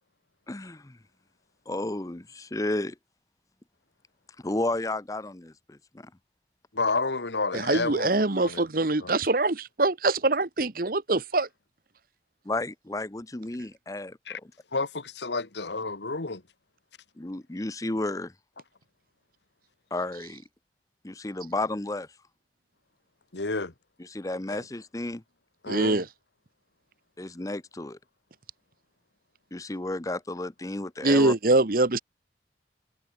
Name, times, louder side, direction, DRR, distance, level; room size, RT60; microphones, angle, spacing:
voice 1, 0.5-1.0 1.7-2.9 4.4-6.1 12.4-14.5 17.2-18.3 19.9-20.4 21.0-22.1 24.0-25.2 27.2-28.0 29.5-31.3, left 2 dB, 20° left, 0.7 m, -32 dB
voice 2, 6.7-8.1 8.4-8.7 9.0-9.1 14.3-14.4 14.7-16.4 23.3-23.7 24.5-24.6 25.6-26.0, left 3 dB, 80° left, 1.6 m, -30 dB
voice 3, 7.5-11.5 25.7-26.1 31.0-32.0, right 2 dB, 55° right, 1.2 m, -24 dB
head